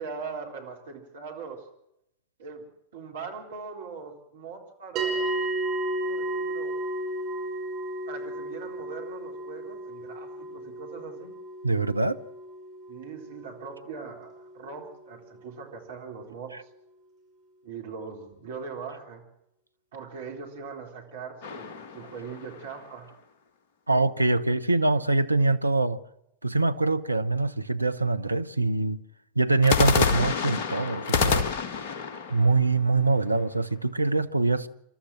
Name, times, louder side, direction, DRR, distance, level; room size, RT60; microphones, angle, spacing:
voice 1, 0.0-1.7 2.4-2.7 2.9-5.4 6.0-6.7 8.1-11.4 12.9-16.7 17.6-19.3 19.9-23.1, right 5 dB, 60° right, 3.8 m, -41 dB
sound 1, 5.0-15.5, right 2 dB, 35° right, 5.7 m, -34 dB
voice 2, 11.6-12.2 23.9-26.0 26.4-29.0 29.4-31.5 32.3-34.7, right 3 dB, 85° right, 0.7 m, -24 dB
sound 2, 21.4-22.9 29.6-33.6, left 5 dB, 50° left, 1.7 m, -28 dB
28.0 x 13.0 x 7.6 m
figure-of-eight pair, 90°, 0 cm